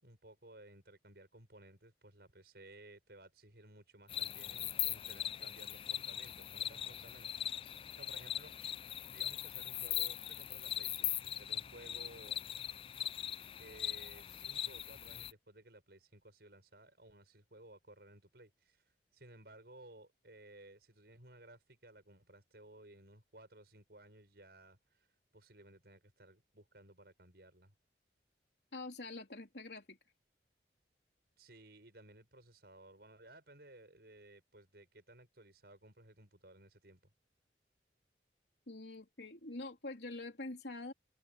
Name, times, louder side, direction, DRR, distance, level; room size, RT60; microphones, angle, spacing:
voice 1, 0.0-7.3 7.9-8.5 9.1-12.4 13.6-27.7 31.4-37.1, right 1 dB, 65° right, 6.8 m, -58 dB
sound 1, 4.1-15.3, left 11 dB, 30° left, 0.3 m, -40 dB
voice 2, 28.7-30.0 38.7-40.9, left 2 dB, 75° left, 3.3 m, -45 dB
head